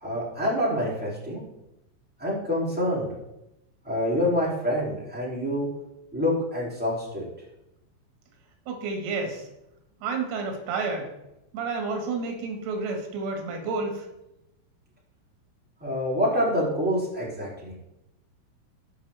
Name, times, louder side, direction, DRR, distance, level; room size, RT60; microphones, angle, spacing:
voice 1, 0.0-1.4 2.2-3.1 3.8-5.7 6.1-7.2 15.8-17.7, left 1 dB, 5° right, -7 dB, 1.0 m, -26 dB
voice 2, 8.7-9.5 10.0-11.1 11.5-14.1, right 4 dB, 90° right, 3 dB, 4.5 m, -30 dB
16.0 x 6.1 x 3.5 m, 0.89 s
omnidirectional pair, 6.0 m